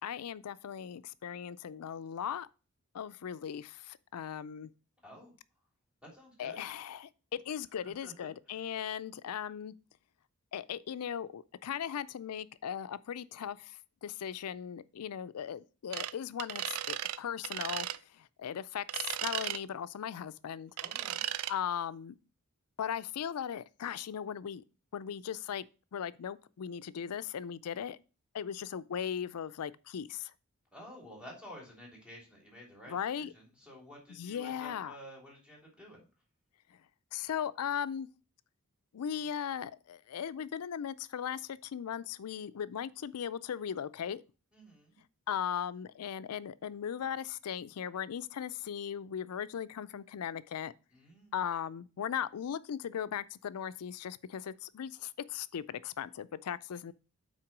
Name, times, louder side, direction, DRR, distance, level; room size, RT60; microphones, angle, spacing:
voice 1, 0.0-2.5 2.9-4.7 6.4-9.7 10.5-17.9 18.1-20.7 21.5-22.2 22.8-24.6 24.9-25.7 25.9-28.0 28.3-30.3 32.9-33.3 34.1-35.0 37.1-38.1 38.9-44.2 45.3-50.7 51.3-56.9, left 8 dB, 85° left, 0.4 m, -38 dB
voice 2, 6.0-6.6 7.8-8.6 20.8-21.2 30.7-36.1 44.5-45.0 50.9-51.3, equal, 5° right, 3.1 m, -51 dB
sound 1, 15.9-16.1 16.4-17.2 17.4-18.0 18.9-19.6 20.8-21.5, right 13 dB, 75° right, 0.4 m, -36 dB
5.9 x 4.4 x 6.0 m
head